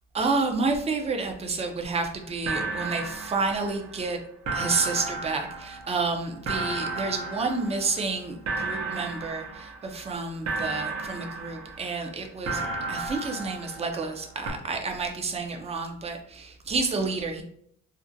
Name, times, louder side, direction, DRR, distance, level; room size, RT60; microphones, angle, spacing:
voice 1, 0.1-4.2 4.5-12.6 12.9-17.4, right 4 dB, 20° right, 3 dB, 0.4 m, -30 dB
sound 1, 2.0-2.1 2.5-4.1 4.5-8.2 8.5-10.1 10.5-12.1 12.5-14.2 14.5-14.6, right 3 dB, 60° right, 0.7 m, -33 dB
2.5 x 2.1 x 2.6 m, 0.67 s
cardioid pair, 90°, 30 cm